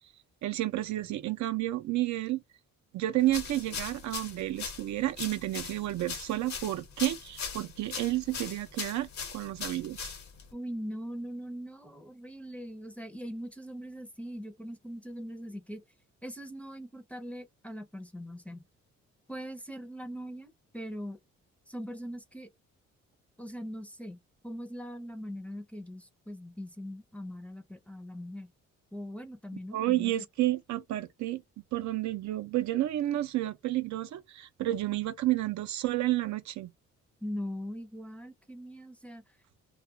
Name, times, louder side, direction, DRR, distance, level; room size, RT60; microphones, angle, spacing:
voice 1, 0.4-2.4 2.9-10.1 29.7-31.4 31.7-36.7, right 15 dB, 65° right, 0.5 m, -31 dB
sound 1, 3.3-10.5, left 6 dB, 65° left, 1.0 m, -40 dB
voice 2, 10.5-15.8 16.2-18.6 19.3-21.2 21.7-22.5 23.4-24.2 24.4-28.5 28.9-30.2 37.2-39.2, equal, 5° left, 0.6 m, -41 dB
2.3 x 2.3 x 2.7 m
cardioid pair, 90°, 30 cm